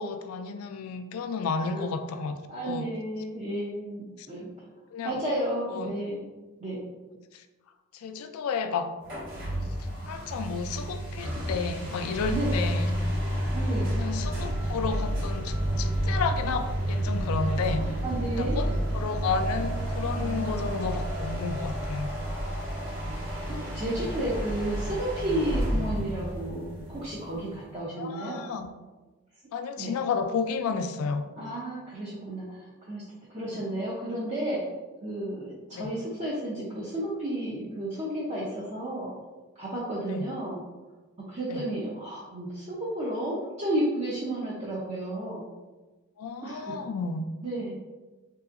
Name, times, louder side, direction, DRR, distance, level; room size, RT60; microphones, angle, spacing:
voice 1, 0.0-2.4 2.6-2.9 4.2-4.3 4.9-5.2 5.7-5.9 7.3-7.4 7.9-8.9 9.8-13.0 13.9-17.9 18.3-22.1 28.0-28.7 29.5-31.3 33.5-33.6 35.7-35.9 40.1-40.3 41.5-41.6 46.2-47.3, left 5 dB, 80° left, 8 dB, 0.3 m, -32 dB
voice 2, 2.5-4.5 5.0-6.3 6.6-6.8 12.3-12.5 13.5-13.9 18.0-18.8 20.0-20.6 22.2-22.6 23.5-28.4 29.8-29.9 31.4-33.0 33.3-34.6 35.0-39.1 39.6-40.6 41.3-45.4 46.4-46.9 47.4-47.8, right 1 dB, 30° right, -8 dB, 0.5 m, -32 dB
sound 1, 9.0-27.5, equal, 55° right, 1.5 m, -30 dB
3.3 x 2.8 x 2.4 m, 1.2 s
head